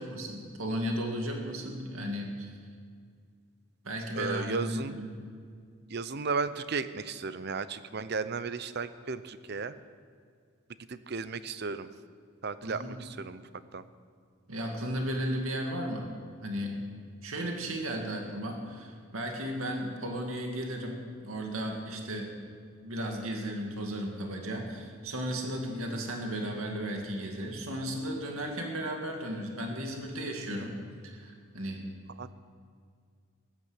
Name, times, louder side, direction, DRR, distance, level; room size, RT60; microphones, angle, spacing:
voice 1, 0.0-2.6 3.8-5.1 12.6-12.9 14.5-16.1 16.4-16.8 17.2-20.9 21.2-22.3 22.8-30.7 31.0-31.8, equal, 80° right, 2 dB, 2.2 m, -35 dB
voice 2, 4.1-5.0 5.9-9.7 10.9-11.9 12.4-13.4 13.7-13.8 32.2-32.3, right 4 dB, 50° right, 13 dB, 0.7 m, -34 dB
14.0 x 12.0 x 8.0 m, 2.1 s
head